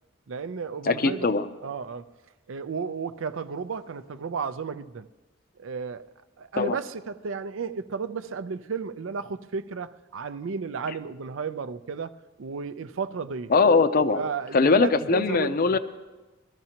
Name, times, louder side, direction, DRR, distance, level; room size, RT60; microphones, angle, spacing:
voice 1, 0.3-1.3 1.6-2.1 2.5-5.1 5.6-6.1 6.4-13.5 14.1-15.8, right 5 dB, 80° right, 0.5 m, -33 dB
voice 2, 0.9-1.5 6.6-6.8 13.5-14.2 14.5-15.8, left 4 dB, 45° left, 0.5 m, -21 dB
22.0 x 13.5 x 2.9 m
head